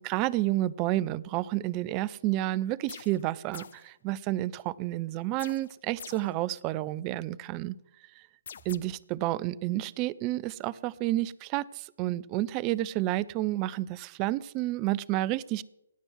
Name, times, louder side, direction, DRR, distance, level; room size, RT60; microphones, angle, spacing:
voice 1, 0.0-7.7 8.2-8.3 8.7-15.6, right 16 dB, 25° right, 21 dB, 0.5 m, -30 dB
sound 1, 2.9-3.3 3.5-3.9 5.4-6.4 8.5-8.8, left 7 dB, 55° left, 0.6 m, -45 dB
17.5 x 6.2 x 9.4 m, 0.85 s
figure-of-eight pair, 135°, 0 cm